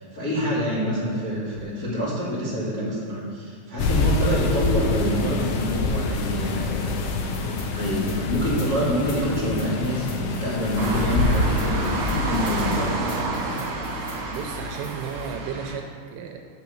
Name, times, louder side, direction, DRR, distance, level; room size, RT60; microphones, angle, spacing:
voice 1, 0.0-13.0, equal, 40° left, -9 dB, 1.3 m, -27 dB
sound 1, 3.8-13.0, left 3 dB, 75° left, 3.1 m, -26 dB
sound 2, 7.3-15.3, left 2 dB, 60° left, 1.6 m, -46 dB
sound 3, 10.8-15.8, right 3 dB, 60° right, 2.5 m, -29 dB
voice 2, 14.3-16.4, right 7 dB, 80° right, 4 dB, 2.9 m, -34 dB
8.2 x 6.3 x 6.9 m, 2.4 s
omnidirectional pair, 6.0 m